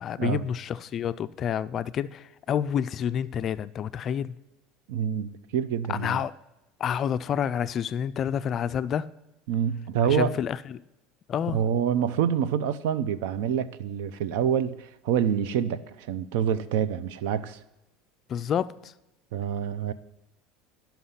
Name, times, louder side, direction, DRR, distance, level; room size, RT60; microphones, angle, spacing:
voice 1, 0.0-4.3 5.9-6.3 6.8-9.1 10.1-10.8 11.3-11.6 18.3-18.9, left 8 dB, 35° left, 0.3 m, -29 dB
voice 2, 4.9-6.2 9.5-10.3 11.5-17.6 19.3-19.9, right 8 dB, 80° right, 0.5 m, -27 dB
11.5 x 5.8 x 5.6 m
cardioid pair, 150°, 0 cm